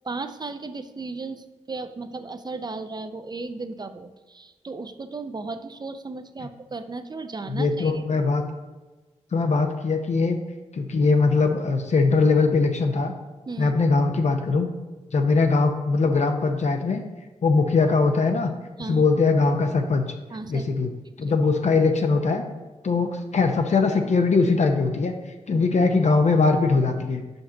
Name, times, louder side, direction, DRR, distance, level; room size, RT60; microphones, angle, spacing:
voice 1, 0.0-8.0 13.5-13.7 18.8-19.1 20.3-20.7 25.5-25.6, right 3 dB, 35° right, 10 dB, 0.4 m, -35 dB
voice 2, 7.5-8.4 9.3-10.4 10.7-13.1 13.6-14.7 15.1-17.0 17.4-18.5 18.9-20.1 20.5-20.9 21.2-22.4 22.8-25.1 25.5-27.2, left 4 dB, 65° left, 5 dB, 0.6 m, -21 dB
5.8 x 5.2 x 3.8 m, 1.2 s
wide cardioid pair, 80°, 13 cm